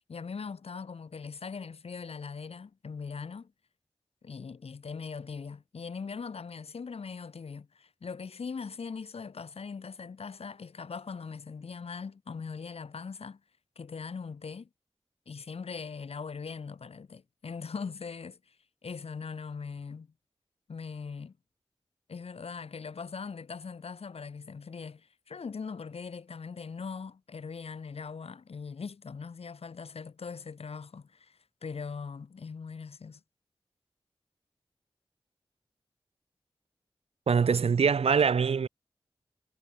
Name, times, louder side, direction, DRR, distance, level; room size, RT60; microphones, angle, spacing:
voice 1, 0.1-3.5 4.2-13.4 13.8-14.7 15.3-18.4 18.8-20.1 20.7-21.3 22.1-33.2, left 5 dB, 85° left, 5.6 m, -40 dB
voice 2, 37.3-38.7, right 6 dB, 85° right, 1.1 m, -23 dB
cardioid pair, 55°, 10 cm